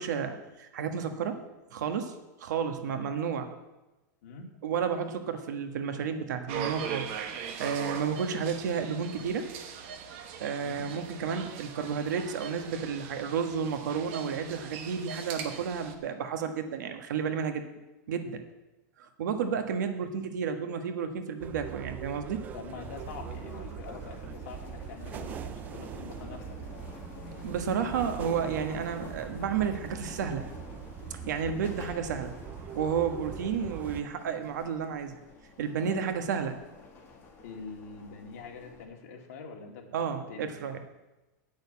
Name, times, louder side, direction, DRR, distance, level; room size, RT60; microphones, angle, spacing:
voice 1, 0.0-1.4 1.7-2.1 2.4-3.5 4.6-7.1 7.6-9.5 10.4-17.6 18.1-18.4 19.0-22.4 27.4-30.5 31.1-32.3 32.7-35.2 35.6-36.6 39.9-40.8, right 7 dB, 85° right, 7 dB, 1.3 m, -31 dB
voice 2, 4.2-4.5 10.6-10.9 22.5-26.6 35.8-36.1 37.4-40.5, left 4 dB, 55° left, 1 dB, 2.2 m, -44 dB
sound 1, 6.5-16.0, right 7 dB, 45° right, 1.1 m, -40 dB
sound 2, 21.4-34.0, right 8 dB, 20° right, 0.3 m, -42 dB
sound 3, 22.8-38.8, left 4 dB, 20° left, 1.8 m, -49 dB
8.9 x 6.6 x 8.5 m, 1.1 s
supercardioid pair, 170°, 9 cm